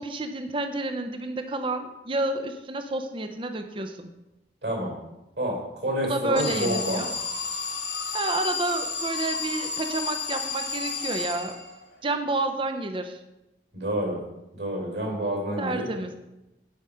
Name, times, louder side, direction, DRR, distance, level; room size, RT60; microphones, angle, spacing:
voice 1, 0.0-4.1 6.0-7.1 8.1-11.6 12.0-13.2 15.6-16.1, right 2 dB, 30° right, 7 dB, 0.6 m, -30 dB
voice 2, 5.4-7.0 13.7-14.2 14.5-15.9, right 1 dB, 70° right, -1 dB, 4.0 m, -28 dB
Alarm, 6.4-11.9, left 4 dB, 80° left, 2.5 m, -32 dB
10.5 x 5.0 x 5.6 m, 0.96 s
head